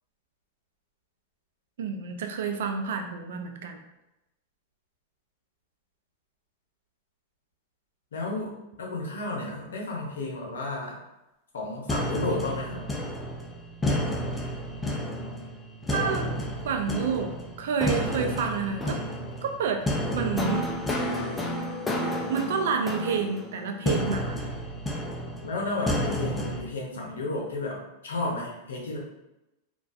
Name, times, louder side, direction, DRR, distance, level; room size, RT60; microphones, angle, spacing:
voice 1, 1.8-3.8 15.9-16.3 16.7-17.3 17.6-19.0 19.4-19.8 20.1-20.7 22.3-24.4, right 5 dB, 75° right, 5 dB, 0.4 m, -29 dB
voice 2, 8.1-8.5 8.8-11.0 11.5-12.9 25.4-29.0, left 2 dB, 90° left, -2 dB, 0.7 m, -32 dB
sound 1, 11.9-26.6, equal, 10° left, 0.4 m, -31 dB
2.3 x 2.2 x 2.4 m, 0.95 s
hypercardioid pair, 120°, 0 cm